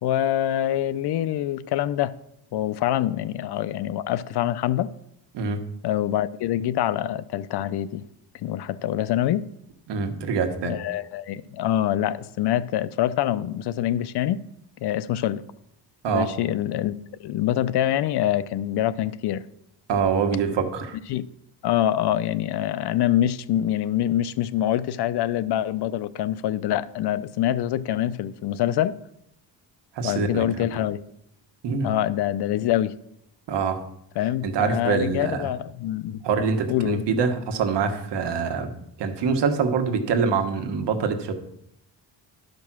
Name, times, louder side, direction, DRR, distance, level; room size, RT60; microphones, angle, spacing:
voice 1, 0.0-2.2 2.5-4.9 5.8-8.0 8.4-9.5 10.6-14.4 14.8-15.4 16.1-16.9 17.2-19.4 21.1-21.3 21.6-29.0 30.0-31.0 31.8-32.9 34.2-36.2 36.7-37.1, left 12 dB, 70° left, 0.6 m, -25 dB
voice 2, 9.9-10.8 16.0-16.3 19.9-21.0 29.9-30.7 31.6-31.9 33.5-33.8 34.4-35.5 36.2-38.7 39.0-41.3, right 5 dB, 75° right, 1.4 m, -25 dB
12.0 x 5.3 x 6.0 m
cardioid pair, 125°, 42 cm